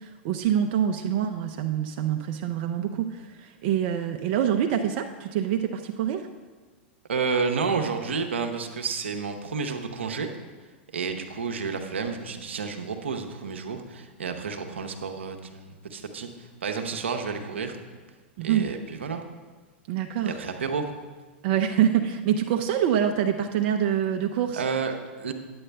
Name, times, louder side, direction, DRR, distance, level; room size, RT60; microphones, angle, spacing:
voice 1, 0.0-6.3 18.4-18.7 19.9-20.4 21.4-24.6, right 9 dB, 55° right, 5 dB, 0.5 m, -25 dB
voice 2, 7.1-10.3 10.9-16.3 16.6-17.8 18.4-19.2 20.2-20.9 24.5-25.3, right 5 dB, 85° right, 5 dB, 0.8 m, -30 dB
8.8 x 8.7 x 3.4 m, 1.4 s
hypercardioid pair, 105°, 6 cm